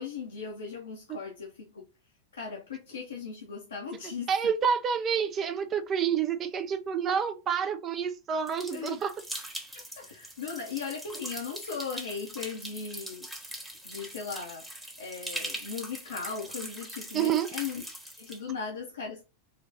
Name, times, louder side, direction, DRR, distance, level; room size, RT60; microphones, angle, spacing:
voice 1, 0.0-1.9 2.3-4.5 8.7-9.0 9.7-14.7 15.0-17.8 18.2-19.2, left 5 dB, 70° left, 1.0 m, -38 dB
voice 2, 4.3-9.1 17.1-17.5, right 7 dB, 30° right, 0.7 m, -28 dB
sound 1, 8.5-18.4, right 1 dB, 5° right, 1.2 m, -41 dB
4.3 x 2.4 x 3.8 m
figure-of-eight pair, 90°, 0 cm